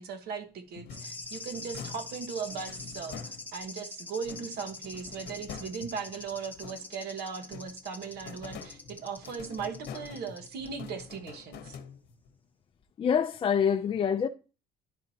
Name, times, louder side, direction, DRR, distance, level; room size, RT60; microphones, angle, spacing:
voice 1, 0.0-11.8, right 6 dB, 70° right, 1.2 m, -38 dB
sound 1, 0.7-3.8 4.2-7.1 7.4-12.3, left 7 dB, 70° left, 0.9 m, -46 dB
sound 2, 0.9-10.7 11.0-11.1, left 3 dB, 10° left, 0.9 m, -44 dB
voice 2, 13.0-14.3, left 7 dB, 30° left, 0.4 m, -26 dB
11.0 x 4.1 x 2.8 m
cardioid pair, 110°, 17 cm